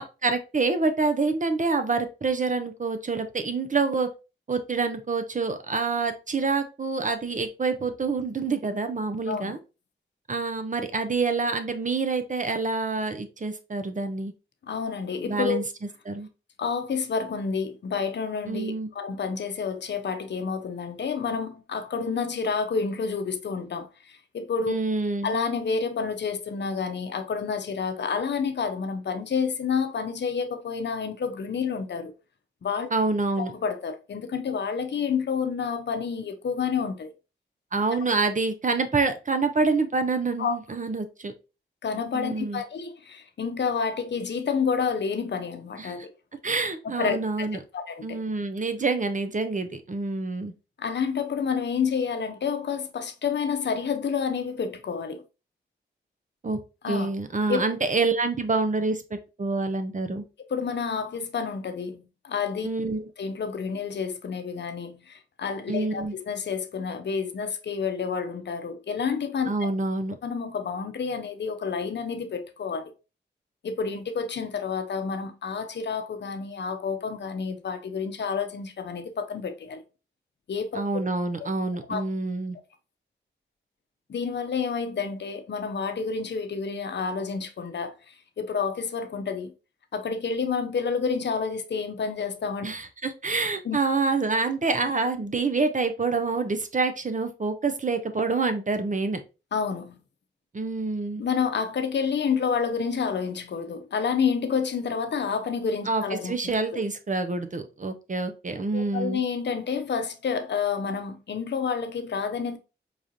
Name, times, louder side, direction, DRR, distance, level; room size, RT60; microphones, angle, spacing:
voice 1, 0.0-4.1 4.5-9.6 10.3-14.3 15.3-15.6 16.1-16.3 18.5-18.9 24.7-25.3 32.9-33.5 37.7-41.3 42.1-42.6 45.8-46.0 46.4-47.6 48.0-50.5 56.4-56.6 56.9-60.2 62.6-63.0 65.7-66.1 69.5-70.2 80.7-82.6 92.6-99.2 100.5-101.2 105.9-109.2, right 3 dB, 40° right, 0.7 m, -27 dB
voice 2, 14.6-15.6 16.6-24.7 25.2-32.1 32.6-32.9 33.4-37.1 40.4-40.6 41.8-46.1 47.0-47.5 47.7-48.2 50.8-55.2 56.8-57.1 57.5-57.6 60.5-62.7 63.2-69.5 70.2-72.9 73.6-79.8 80.5-80.8 81.9-82.0 84.1-89.5 89.9-92.7 93.6-93.8 99.5-100.0 101.2-106.3 108.7-112.6, left 5 dB, 60° left, 0.6 m, -29 dB
4.8 x 2.4 x 2.7 m
cardioid pair, 40°, 21 cm